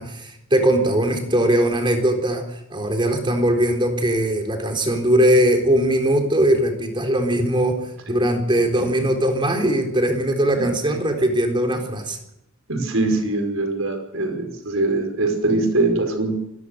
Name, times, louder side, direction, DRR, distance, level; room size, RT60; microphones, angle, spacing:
voice 1, 0.0-12.2, right 1 dB, 25° right, 5 dB, 4.0 m, -20 dB
voice 2, 12.7-16.3, right 2 dB, 80° right, 5 dB, 5.3 m, -22 dB
25.5 x 19.0 x 6.6 m, 0.85 s
head